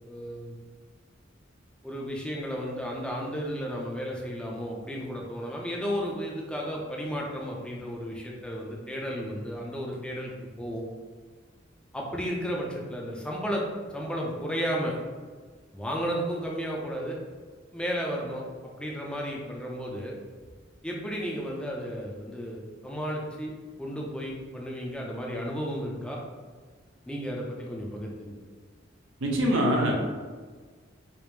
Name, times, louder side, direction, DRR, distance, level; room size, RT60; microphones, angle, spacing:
voice 1, 0.1-0.5 1.8-10.3 10.6-10.8 11.9-13.7 13.9-15.0 15.7-17.2 17.7-20.1 20.8-26.2 27.1-28.4, equal, 5° left, -2 dB, 0.5 m, -33 dB
voice 2, 29.2-29.9, equal, 80° right, 0 dB, 0.7 m, -23 dB
5.0 x 2.1 x 3.1 m, 1.5 s
head